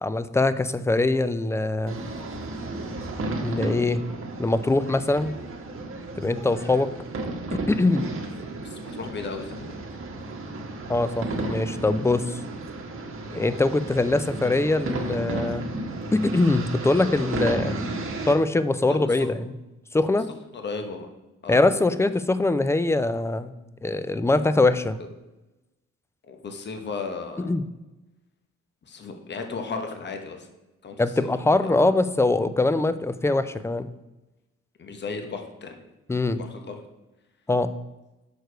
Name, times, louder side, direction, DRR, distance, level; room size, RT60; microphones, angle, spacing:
voice 1, 0.0-2.0 3.4-4.0 4.4-5.3 6.2-6.9 7.5-8.1 10.9-12.4 13.3-15.7 16.1-17.7 18.3-19.5 19.9-20.3 21.5-23.5 23.8-25.0 27.5-27.6 31.0-33.9 36.1-36.4 37.5-37.7, left 2 dB, 10° left, 13 dB, 0.3 m, -23 dB
sound 1, 1.9-18.3, right 2 dB, 45° right, 1.3 m, -33 dB
voice 2, 8.6-10.0 18.9-19.3 20.5-21.1 21.4-21.6 25.0-25.1 26.2-27.5 28.8-30.5 30.8-31.9 32.7-32.8 34.8-35.9 36.4-36.8, left 4 dB, 35° left, 5 dB, 1.0 m, -36 dB
6.4 x 4.6 x 4.6 m, 1.0 s
cardioid pair, 90°, 30 cm